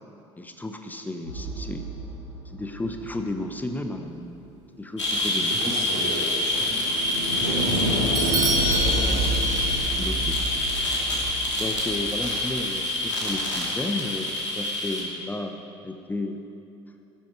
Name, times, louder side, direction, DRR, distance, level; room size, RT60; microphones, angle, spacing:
voice 1, 0.4-1.9 2.4-4.3 4.7-5.8 10.0-10.4 11.6-16.4, left 2 dB, 10° left, 5 dB, 1.1 m, -33 dB
sound 1, 1.2-3.4 5.2-13.3, right 1 dB, 90° right, 2.9 m, -31 dB
sound 2, 5.0-15.0, left 2 dB, 80° left, 2.6 m, -26 dB
voice 2, 5.5-6.6 7.3-9.3, right 2 dB, 70° right, -4 dB, 3.3 m, -34 dB
Bell / Doorbell, 8.2-10.0, right 3 dB, 30° right, 2.6 m, -29 dB
17.5 x 13.5 x 4.7 m, 2.8 s
figure-of-eight pair, 60°, 15 cm